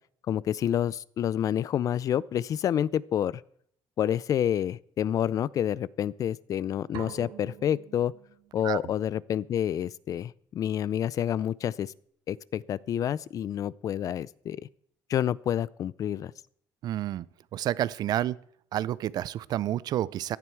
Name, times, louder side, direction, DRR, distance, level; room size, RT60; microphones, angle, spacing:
voice 1, 0.3-3.4 4.0-8.1 8.5-11.9 12.3-14.6 15.1-16.3, left 10 dB, 45° left, 22 dB, 0.4 m, -28 dB
sound 1, 6.9-8.8, right 11 dB, 75° right, 1.8 m, -45 dB
voice 2, 16.8-17.3 17.5-18.4 18.7-20.4, right 12 dB, 55° right, 20 dB, 0.5 m, -29 dB
16.0 x 11.0 x 4.6 m, 0.63 s
cardioid pair, 140°, 8 cm